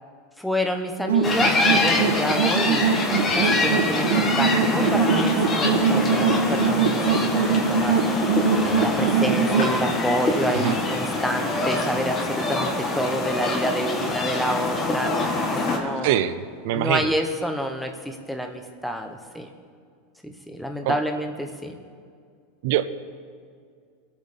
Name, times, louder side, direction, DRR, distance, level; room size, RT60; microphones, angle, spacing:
voice 1, 0.4-2.8 3.3-8.0 8.7-15.1 15.5-16.2 16.7-19.5 20.2-21.8, equal, ahead, 4 dB, 0.8 m, -28 dB
sound 1, 1.1-9.8, right 6 dB, 90° right, 1.4 m, -22 dB
sound 2, 1.2-15.8, left 2 dB, 20° left, 1.3 m, -25 dB
Skateboard, 5.3-16.1 18.7-18.8, left 2 dB, 75° left, 4.6 m, -41 dB
voice 2, 16.0-16.4 16.6-17.1 20.9-21.0 22.6-22.9, right 12 dB, 50° right, 12 dB, 0.6 m, -23 dB
25.0 x 8.6 x 4.2 m, 2.1 s
supercardioid pair, 175°, 0 cm